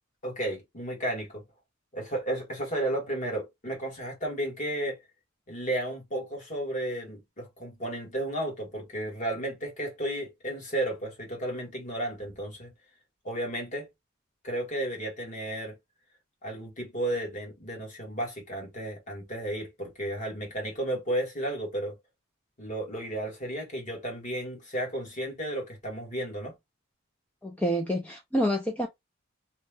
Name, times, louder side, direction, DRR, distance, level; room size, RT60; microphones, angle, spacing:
voice 1, 0.2-1.4 1.9-5.0 5.5-12.7 13.2-13.9 14.4-15.7 16.4-21.9 22.6-26.5, right 1 dB, 35° left, 1.2 m, -33 dB
voice 2, 27.4-28.9, equal, 5° left, 0.3 m, -27 dB
2.7 x 2.1 x 3.1 m
head